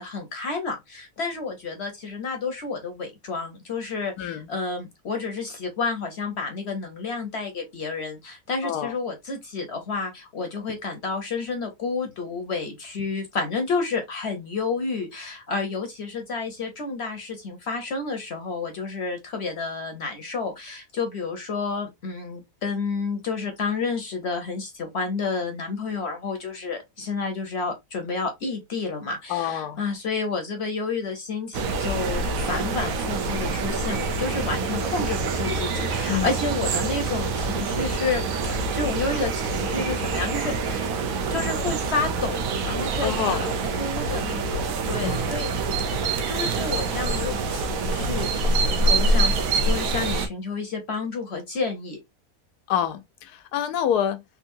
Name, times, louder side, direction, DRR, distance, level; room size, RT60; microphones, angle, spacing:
voice 1, 0.0-40.8 41.3-45.5 45.9-52.0, left 4 dB, 55° left, 0.8 m, -30 dB
voice 2, 4.2-4.5 8.6-8.9 29.3-29.8 36.1-36.3 43.0-43.5 45.0-45.4 52.7-54.2, left 9 dB, 85° left, 1.1 m, -27 dB
sound 1, 31.5-50.3, right 3 dB, 70° right, 1.0 m, -26 dB
3.7 x 2.5 x 2.6 m
omnidirectional pair, 1.6 m